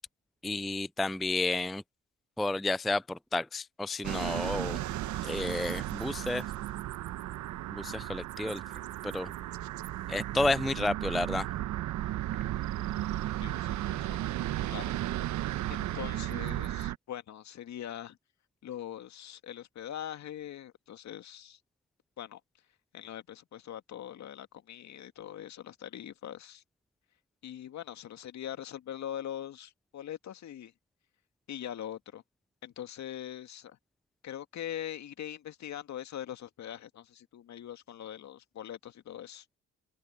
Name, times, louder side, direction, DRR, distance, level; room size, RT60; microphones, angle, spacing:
voice 1, 0.4-1.8 2.4-4.8 5.2-6.4 7.7-8.6 9.0-9.3 10.1-11.5, left 2 dB, ahead, 0.4 m, -31 dB
sound 1, 4.0-17.0, right 14 dB, 65° right, 1.2 m, -35 dB
voice 2, 13.4-14.2 14.7-14.9 15.7-18.2 18.6-21.6 22.2-22.4 22.9-26.6 27.4-30.7 31.5-32.2 32.6-33.8 34.2-39.5, left 10 dB, 60° left, 2.2 m, -42 dB
open air
hypercardioid pair, 55°, 31 cm